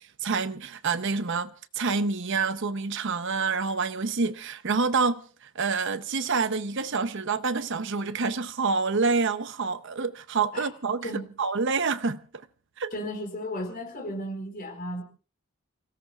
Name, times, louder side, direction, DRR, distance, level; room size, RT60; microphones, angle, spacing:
voice 1, 0.2-11.1 11.4-12.5 12.8-12.9, right 4 dB, 55° right, 0.7 m, -27 dB
voice 2, 12.9-15.0, equal, 40° left, 4.3 m, -34 dB
30.0 x 17.0 x 2.4 m
head